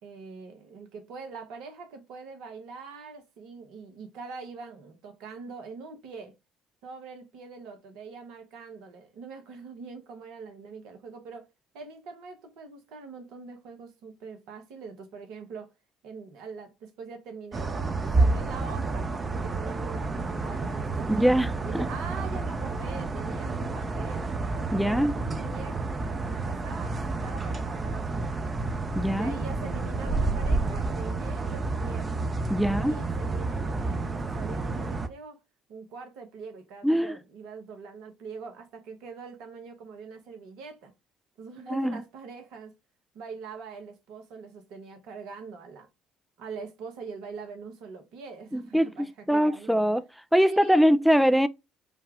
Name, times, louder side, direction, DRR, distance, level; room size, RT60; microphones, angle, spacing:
voice 1, 0.0-6.3 6.8-11.5 11.7-15.7 16.0-24.3 24.7-25.9 26.2-28.5 29.1-32.2 32.6-35.4 35.7-40.9 41.4-42.7 43.1-45.9 46.4-49.8 50.4-50.9, right 4 dB, 70° right, 1.1 m, -43 dB
sound 1, 17.5-35.1, right 3 dB, 35° right, 0.8 m, -30 dB
voice 2, 21.1-21.9 24.7-25.1 28.9-29.3 32.5-33.0 36.8-37.2 41.7-42.0 48.5-50.0 50.3-51.5, equal, ahead, 0.4 m, -23 dB
5.2 x 2.4 x 3.4 m
hypercardioid pair, 60°, 0 cm